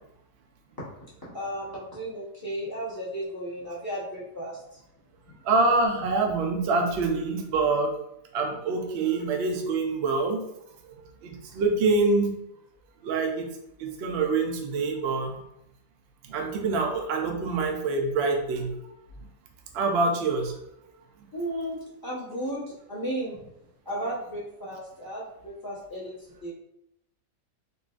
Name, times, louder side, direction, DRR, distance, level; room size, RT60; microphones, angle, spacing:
voice 1, 1.3-4.8 21.3-23.4 23.8-26.1 26.4-26.5, right 1 dB, 15° left, -8 dB, 0.9 m, -34 dB
voice 2, 5.4-7.9 8.3-10.4 11.2-12.3 13.0-13.5 13.8-15.4 16.3-18.7 19.7-20.5, right 3 dB, 80° right, 3 dB, 0.5 m, -25 dB
3.7 x 2.3 x 2.4 m, 0.79 s
omnidirectional pair, 1.7 m